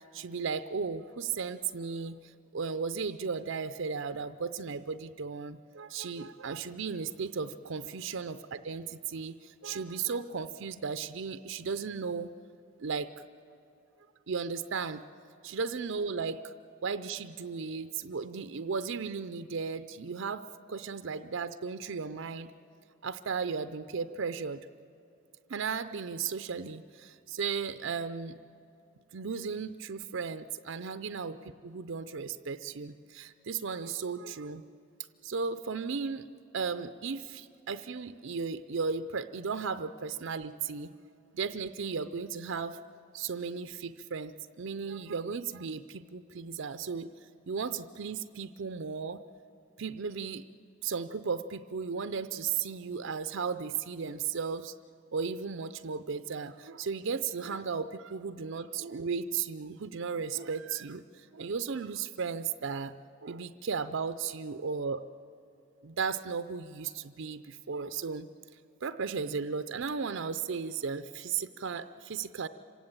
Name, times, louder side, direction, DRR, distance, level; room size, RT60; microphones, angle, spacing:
voice 1, 0.0-12.3 12.8-13.1 14.3-15.0 15.4-16.5 16.8-22.5 23.0-24.6 25.5-28.4 29.1-34.6 35.2-36.3 36.5-40.9 41.3-42.8 43.1-47.1 47.5-49.2 49.8-50.4 50.8-54.7 55.1-62.9 63.2-65.0 65.8-68.3 68.8-72.5, right 5 dB, 55° right, 11 dB, 0.5 m, -35 dB
26.0 x 16.5 x 9.0 m, 2.5 s
head